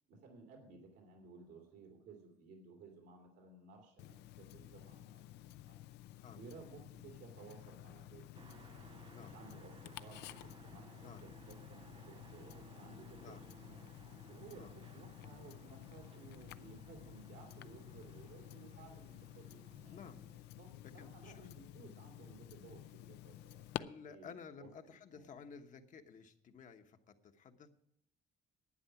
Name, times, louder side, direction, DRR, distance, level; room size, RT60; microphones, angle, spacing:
voice 1, 0.1-5.8 6.3-8.3 9.1-13.9 14.3-20.0 20.5-23.7 24.1-25.3, right 5 dB, 85° right, 2 dB, 3.0 m, -57 dB
Tick-tock, 4.0-23.8, left 14 dB, 80° left, 0.5 m, -52 dB
sound 1, 8.3-20.4, right 7 dB, 30° right, 0.3 m, -61 dB
voice 2, 19.9-20.2 21.0-21.5 23.8-27.7, left 6 dB, 50° left, 6 dB, 1.2 m, -54 dB
11.5 x 9.3 x 5.9 m, 0.73 s
cardioid pair, 110°, 17 cm